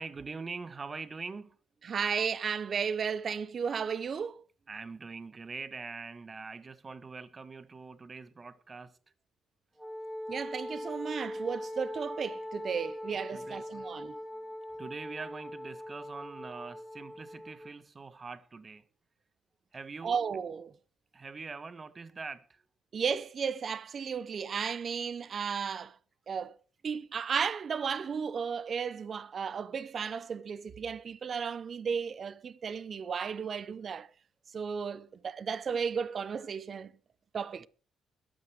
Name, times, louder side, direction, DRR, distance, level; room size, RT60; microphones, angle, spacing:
voice 1, 0.0-1.6 4.7-9.0 13.3-13.9 14.3-14.4 14.8-18.9 19.7-20.2 21.1-22.6 37.6-37.7, right 4 dB, 35° right, 1.3 m, -43 dB
voice 2, 1.9-4.4 10.3-14.2 20.0-20.7 22.9-25.9 26.3-26.5 26.8-34.1 34.5-36.9 37.3-37.7, right 6 dB, 50° right, 0.7 m, -34 dB
Wind instrument woodwind instrument, 9.8-17.8, left 1 dB, 10° right, 5.8 m, -41 dB
21.5 x 12.5 x 3.3 m
cardioid pair, 90°, 0 cm